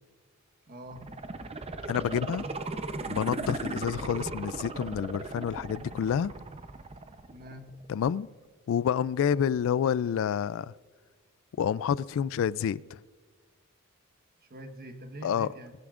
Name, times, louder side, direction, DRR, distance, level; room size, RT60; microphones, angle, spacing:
voice 1, 0.7-1.1 7.3-7.7 14.5-15.7, right 1 dB, 45° right, 1.2 m, -44 dB
sound 1, 0.9-7.9 8.2-8.3, right 3 dB, 30° right, 0.6 m, -37 dB
voice 2, 1.9-2.5 3.1-6.3 7.9-8.3 8.7-10.7 11.6-13.0 15.2-15.5, left 8 dB, 65° left, 0.3 m, -28 dB
21.5 x 17.0 x 2.5 m
head